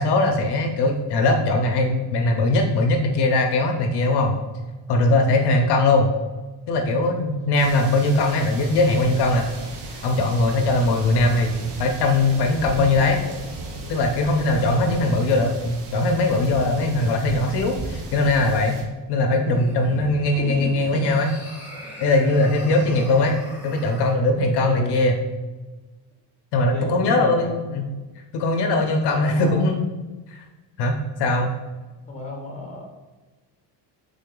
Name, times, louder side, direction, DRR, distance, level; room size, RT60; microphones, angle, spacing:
voice 1, 0.0-4.4 4.9-6.1 6.7-9.5 9.9-11.5 11.8-13.2 13.9-18.8 19.1-21.3 22.0-23.4 23.6-25.2 26.5-27.8 28.3-29.8 30.3-30.4 30.8-31.5, left 2 dB, 70° left, 4 dB, 0.6 m, -20 dB
sound 1, 7.6-18.8, right 2 dB, 70° right, 1.0 m, -36 dB
voice 2, 14.6-15.2 19.5-19.6 20.4-21.1 24.7-25.0 26.6-27.5 29.1-29.7 32.1-33.0, left 2 dB, 15° left, 0 dB, 0.8 m, -33 dB
sound 2, 19.4-24.2, equal, 5° right, 1.4 m, -39 dB
3.8 x 3.7 x 3.7 m, 1.2 s
cardioid pair, 155°, 42 cm